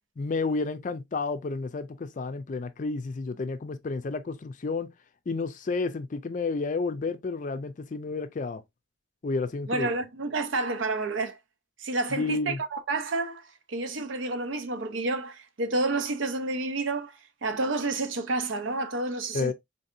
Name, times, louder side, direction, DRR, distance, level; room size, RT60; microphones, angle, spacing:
voice 1, 0.2-4.9 5.3-8.6 9.2-9.9 12.1-12.6 19.3-19.5, left 3 dB, 40° left, 0.4 m, -31 dB
voice 2, 9.7-11.4 11.8-19.5, right 2 dB, 80° right, 0.6 m, -30 dB
3.8 x 2.7 x 2.4 m
head